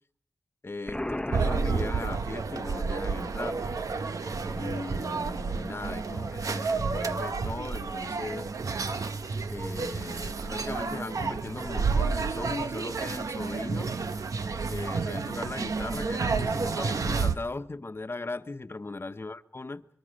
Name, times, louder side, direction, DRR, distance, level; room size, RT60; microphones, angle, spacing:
voice 1, 0.6-3.6 4.4-8.5 9.5-13.9 14.7-19.9, left 3 dB, 45° left, 1.1 m, -38 dB
Explosion, 0.9-2.7, left 1 dB, 10° left, 1.0 m, -35 dB
sound 1, 1.3-17.3, right 4 dB, 85° right, 1.0 m, -30 dB
23.5 x 22.5 x 6.5 m
cardioid pair, 45°, 6 cm